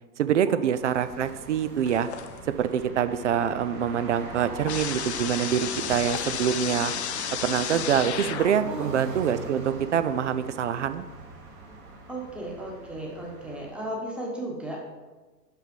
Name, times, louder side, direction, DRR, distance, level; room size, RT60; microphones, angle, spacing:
voice 1, 0.2-2.1 2.6-6.9 7.4-11.1, right 8 dB, 50° right, 12 dB, 0.5 m, -25 dB
sound 1, 0.7-13.9, right 3 dB, 25° right, 1.3 m, -41 dB
sound 2, 1.9-2.7 3.0-8.8, left 9 dB, 45° left, 0.5 m, -34 dB
voice 2, 8.5-8.9 12.1-14.8, right 1 dB, ahead, -2 dB, 1.2 m, -35 dB
6.0 x 5.8 x 5.2 m, 1.3 s
figure-of-eight pair, 110°, 49 cm